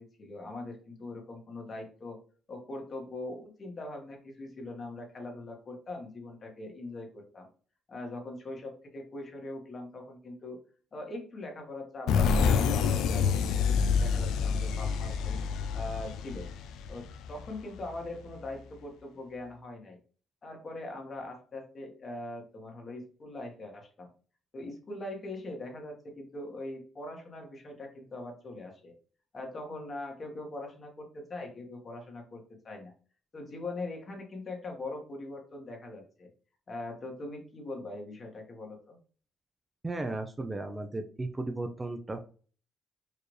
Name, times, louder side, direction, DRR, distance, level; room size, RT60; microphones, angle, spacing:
voice 1, 0.0-2.2 2.5-7.5 7.9-10.6 10.9-15.4 15.7-16.5 16.9-20.0 20.4-24.1 24.5-28.9 29.3-32.9 33.3-36.3 36.7-39.0, left 2 dB, 40° left, 2 dB, 1.3 m, -41 dB
sound 1, 12.1-17.6, left 6 dB, 90° left, 0.3 m, -27 dB
voice 2, 39.8-42.2, right 2 dB, 20° right, 6 dB, 0.5 m, -35 dB
4.6 x 2.4 x 3.2 m, 0.42 s
cardioid pair, 90°, 0 cm